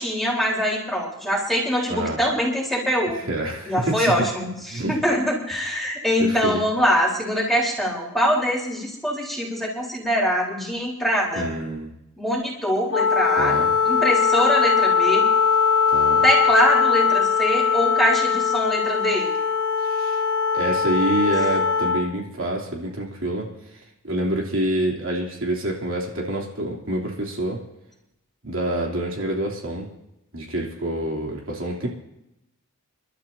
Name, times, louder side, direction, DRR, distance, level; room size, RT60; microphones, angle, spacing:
voice 1, 0.0-3.2 3.7-11.4 12.2-13.6 13.9-15.3 16.2-19.3, equal, ahead, -3 dB, 4.0 m, -23 dB
voice 2, 3.3-4.1 4.7-5.0 6.2-6.6 11.3-11.9 13.3-13.7 15.9-16.3 19.8-20.2 20.5-23.5 24.0-27.6 28.4-29.9 30.3-31.9, right 1 dB, 60° right, -1 dB, 3.2 m, -27 dB
Wind instrument woodwind instrument, 12.9-22.1, left 6 dB, 60° left, 1.3 m, -20 dB
30.0 x 12.5 x 2.8 m, 0.86 s
head